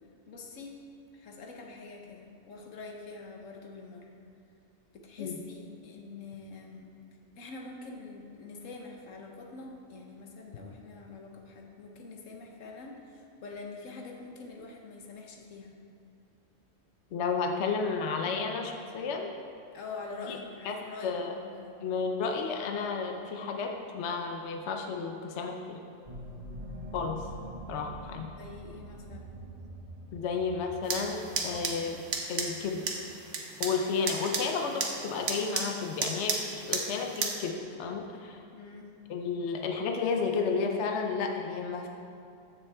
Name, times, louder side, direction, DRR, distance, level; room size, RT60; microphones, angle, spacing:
voice 1, 0.3-0.8 1.1-4.1 4.9-6.9 7.4-15.7 19.7-21.8 28.4-29.3 38.5-38.9, left 3 dB, 90° left, 1 dB, 1.4 m, -45 dB
voice 2, 17.1-19.3 20.3-20.4 20.6-20.8 21.0-21.3 21.8-25.8 26.9-27.3 27.7-28.3 30.1-32.0 32.3-32.8 33.6-38.4 39.1-41.9, left 5 dB, 70° left, 3 dB, 1.0 m, -32 dB
sound 1, 26.0-33.0, right 1 dB, 30° right, 1.1 m, -45 dB
sound 2, 30.8-37.3, right 4 dB, 75° right, 1.2 m, -35 dB
14.0 x 6.0 x 3.5 m, 2.6 s
omnidirectional pair, 1.3 m